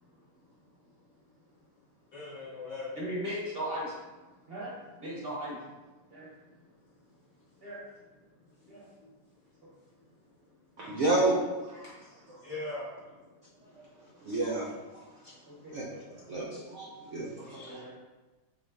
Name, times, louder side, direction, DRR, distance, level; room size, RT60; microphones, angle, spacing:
voice 1, 2.1-3.0 4.3-4.5 6.3-7.6 8.6-9.5 9.9-10.1 10.5-11.0 12.4-13.3 13.5-14.6 15.8-16.1 17.4-17.9, left 2 dB, 55° left, -6 dB, 1.0 m, -45 dB
voice 2, 3.0-3.9 4.5-4.7 5.0-5.6 6.1-6.3 7.6-7.8 8.6-8.9 11.8-12.3 15.4-15.8 17.4-17.9, equal, 40° right, -7 dB, 0.9 m, -38 dB
voice 3, 10.8-11.4 11.7-11.9 14.2-14.7 15.7-15.8 16.3-17.8, right 2 dB, 70° right, -4 dB, 0.7 m, -30 dB
4.0 x 3.0 x 3.3 m, 1.2 s
omnidirectional pair, 1.9 m